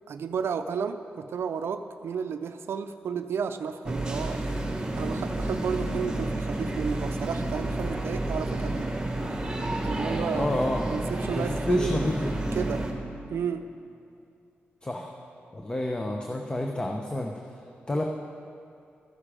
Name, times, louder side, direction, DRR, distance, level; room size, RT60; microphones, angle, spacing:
voice 1, 0.1-4.4 5.0-8.9 9.8-10.5 10.9-12.0 12.5-12.8 13.3-13.7, right 6 dB, 75° right, 9 dB, 0.4 m, -32 dB
sound 1, 3.9-12.9, right 1 dB, 20° right, 1.4 m, -30 dB
voice 2, 10.3-10.8 11.2-12.5 14.8-15.1 15.5-17.3 17.9-18.0, left 1 dB, 20° left, 2 dB, 0.8 m, -29 dB
12.5 x 9.8 x 5.0 m, 2.5 s
cardioid pair, 70°, 4 cm